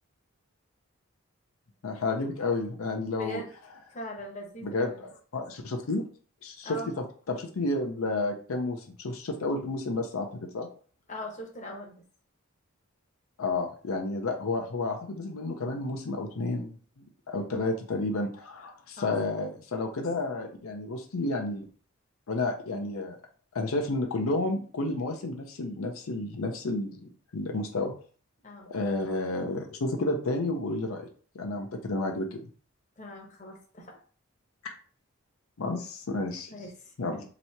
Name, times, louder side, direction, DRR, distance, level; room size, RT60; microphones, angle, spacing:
voice 1, 1.8-3.4 4.6-6.0 6.4-10.3 10.5-10.7 13.4-16.8 17.3-21.7 22.3-23.2 23.5-27.9 28.7-31.1 31.3-32.4 35.6-36.5 37.0-37.2, left 2 dB, 80° left, 3 dB, 0.6 m, -31 dB
voice 2, 3.2-3.5 3.9-5.0 6.6-7.0 11.1-12.0 19.0-19.2 28.4-28.7 33.0-34.0 36.5-37.2, equal, 35° left, 0 dB, 0.9 m, -40 dB
3.0 x 2.8 x 4.3 m, 0.42 s
head